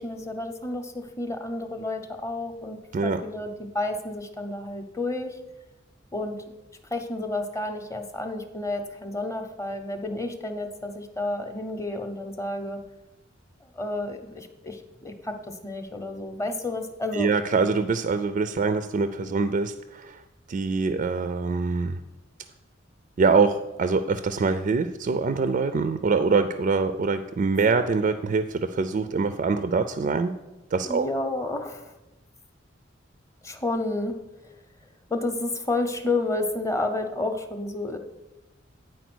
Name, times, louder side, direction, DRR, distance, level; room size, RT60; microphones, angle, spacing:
voice 1, 0.0-5.4 6.1-6.6 6.9-12.8 13.6-17.3 30.8-31.9 33.4-34.2 35.1-38.0, left 2 dB, 15° left, 7 dB, 0.7 m, -31 dB
voice 2, 17.1-20.2 20.5-22.0 23.2-30.3 30.7-31.1, right 4 dB, 40° right, 11 dB, 0.3 m, -24 dB
9.1 x 4.4 x 6.1 m, 1.0 s
head